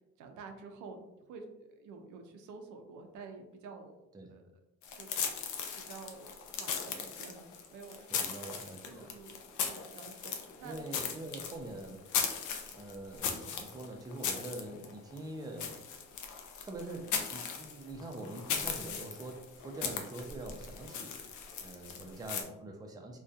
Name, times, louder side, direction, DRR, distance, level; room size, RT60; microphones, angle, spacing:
voice 1, 0.2-4.4 5.0-5.1 5.7-7.4 7.7-8.3 8.8-9.4 9.6-10.8, right 4 dB, 80° right, 5 dB, 0.5 m, -49 dB
sound 1, 4.8-22.4, left 6 dB, 80° left, 0.5 m, -38 dB
voice 2, 8.1-9.2 10.6-12.1 12.7-15.8 16.6-21.2 21.6-23.2, right 2 dB, 15° right, 2 dB, 0.4 m, -44 dB
2.6 x 2.2 x 2.4 m, 0.94 s
cardioid pair, 90°, 30 cm